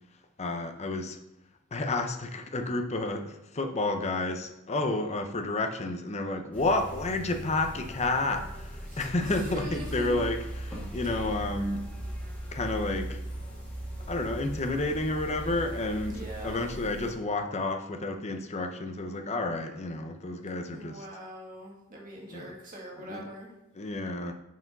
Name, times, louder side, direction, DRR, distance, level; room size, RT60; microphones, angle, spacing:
voice 1, 0.4-1.2 1.7-10.4 10.7-11.9 12.5-13.2 14.1-21.0 22.3-22.5 23.1-23.2 23.8-24.3, left 2 dB, 30° left, 6 dB, 0.6 m, -30 dB
sound 1, 6.5-17.1, right 1 dB, 5° left, 1.8 m, -39 dB
voice 2, 8.9-10.2 10.9-11.4 16.1-16.8 20.7-23.5, right 1 dB, 40° right, -2 dB, 1.9 m, -43 dB
6.1 x 4.8 x 5.3 m, 0.93 s
head